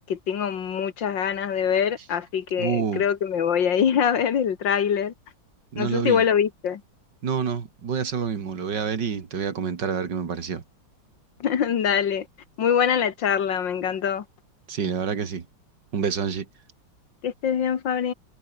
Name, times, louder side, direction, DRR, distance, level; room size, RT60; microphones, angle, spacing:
voice 1, 0.1-5.1 5.8-6.8 11.4-12.3 12.6-14.2 17.2-18.1, left 8 dB, 70° left, 2.2 m, -24 dB
voice 2, 2.6-3.0 5.7-6.3 7.2-10.6 14.7-15.5 15.9-16.5, right 6 dB, 65° right, 2.6 m, -27 dB
omnidirectional pair, 2.1 m